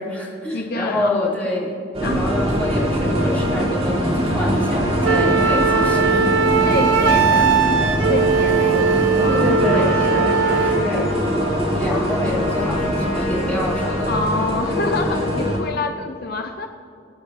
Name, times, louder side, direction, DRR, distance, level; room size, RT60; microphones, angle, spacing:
voice 1, 0.0-6.2 6.5-6.7 9.3-11.4 11.7-14.1, left 1 dB, 10° left, -7 dB, 3.3 m, -26 dB
voice 2, 0.5-1.1 2.0-2.3 5.7-7.5 8.0-10.1 14.0-16.7, left 2 dB, 55° left, 5 dB, 0.7 m, -27 dB
sound 1, 1.9-15.6, equal, 35° right, 3.5 m, -22 dB
Wind instrument woodwind instrument, 5.0-10.9, right 5 dB, 90° right, 0.6 m, -19 dB
Trumpet, 9.5-14.5, left 2 dB, 35° left, 1.8 m, -35 dB
21.5 x 9.6 x 2.9 m, 2.4 s
head